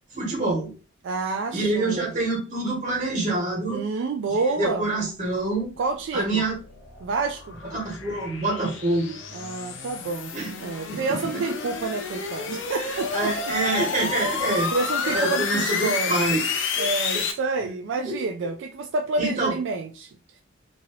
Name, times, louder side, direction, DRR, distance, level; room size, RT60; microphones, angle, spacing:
voice 1, 0.1-0.7 1.5-3.8 4.6-5.7 6.1-6.5 7.7-9.2 10.3-10.5 10.9-11.5 12.8-14.7 15.0-16.4 16.8-16.9 19.2-19.5, right 2 dB, 40° right, 1.2 m, -26 dB
voice 2, 1.0-2.1 3.7-4.9 5.8-6.4 7.0-7.6 9.3-10.3 10.6-13.3 14.7-16.2 16.8-20.2, right 3 dB, 65° right, 0.3 m, -28 dB
sound 1, 6.0-17.3, left 5 dB, 65° left, 0.5 m, -30 dB
2.8 x 2.7 x 2.9 m
head